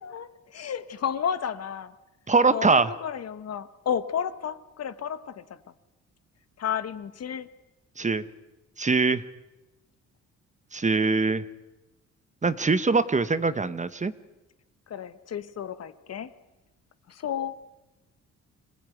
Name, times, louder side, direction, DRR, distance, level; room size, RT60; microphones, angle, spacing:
voice 1, 0.0-1.9 2.5-5.4 6.6-7.5 14.9-16.3 17.1-17.5, left 8 dB, 55° left, 13 dB, 1.4 m, -32 dB
voice 2, 2.3-2.9 8.0-8.2 8.8-9.2 10.7-11.4 12.4-14.1, right 4 dB, 25° right, 14 dB, 1.2 m, -22 dB
25.5 x 17.5 x 9.3 m, 1.0 s
cardioid pair, 90°, 30 cm